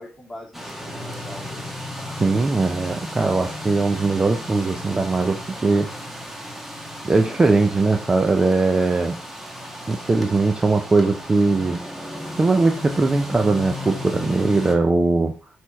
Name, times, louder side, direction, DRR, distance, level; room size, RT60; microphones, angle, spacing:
voice 1, 0.0-2.5, left 1 dB, 15° left, -3 dB, 2.8 m, -42 dB
sound 1, 0.5-14.8, left 1 dB, 5° right, 1.3 m, -35 dB
voice 2, 2.2-6.2 7.0-9.2 9.9-11.8 12.4-15.3, right 3 dB, 20° right, 5 dB, 0.6 m, -20 dB
6.6 x 4.4 x 4.6 m, 0.37 s
cardioid pair, 115°, 3 cm